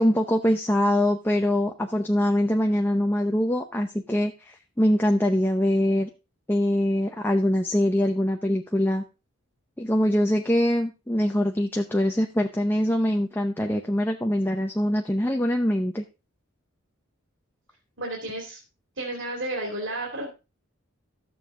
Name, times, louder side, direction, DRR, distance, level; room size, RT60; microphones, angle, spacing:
voice 1, 0.0-6.1 6.5-9.0 9.8-16.0, left 1 dB, 10° left, 3 dB, 0.7 m, -23 dB
voice 2, 18.0-18.6 19.0-20.3, right 1 dB, 65° right, 0 dB, 2.7 m, -32 dB
13.5 x 7.2 x 3.7 m, 0.30 s
head